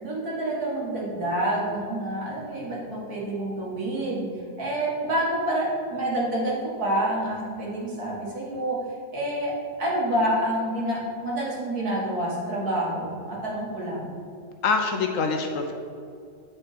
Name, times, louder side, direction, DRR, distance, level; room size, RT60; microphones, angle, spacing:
voice 1, 0.0-4.2 4.6-8.8 9.1-9.5 9.8-14.1, right 1 dB, 75° right, -5 dB, 2.3 m, -28 dB
voice 2, 14.6-15.7, left 4 dB, 65° left, 4 dB, 1.0 m, -25 dB
8.5 x 4.3 x 5.0 m, 2.4 s
omnidirectional pair, 1.6 m